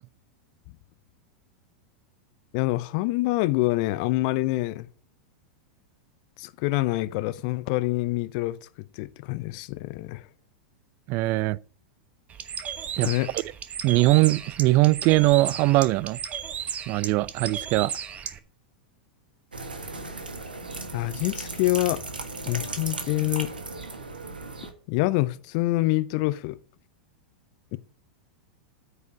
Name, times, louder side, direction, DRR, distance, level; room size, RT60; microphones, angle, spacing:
voice 1, 2.5-4.9 6.4-8.7 8.9-10.3 13.0-13.3 20.9-22.1 22.5-23.5 24.9-26.6 27.7-27.8, left 19 dB, 50° left, 0.6 m, -26 dB
voice 2, 11.1-11.6 13.0-13.1 13.8-16.2 16.9-17.9, right 19 dB, 45° right, 0.4 m, -21 dB
Bird, 12.3-18.4, right 8 dB, 30° right, 1.1 m, -35 dB
sound 1, 19.5-24.7, right 3 dB, 85° right, 1.6 m, -36 dB
9.2 x 5.0 x 7.0 m
figure-of-eight pair, 90°, 5 cm